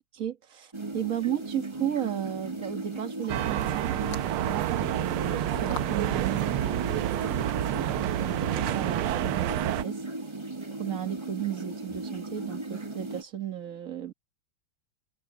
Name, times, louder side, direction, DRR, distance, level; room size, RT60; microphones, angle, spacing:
voice 1, 0.1-3.9 4.3-7.4 7.8-10.0 10.8-14.1, right 10 dB, 40° right, 1.7 m, -34 dB
sound 1, 0.7-13.2, right 2 dB, 15° right, 1.1 m, -37 dB
sound 2, 3.3-8.9, left 2 dB, 55° left, 8.2 m, -45 dB
sound 3, 3.3-9.8, right 14 dB, 90° right, 1.5 m, -29 dB
omnidirectional pair, 2.3 m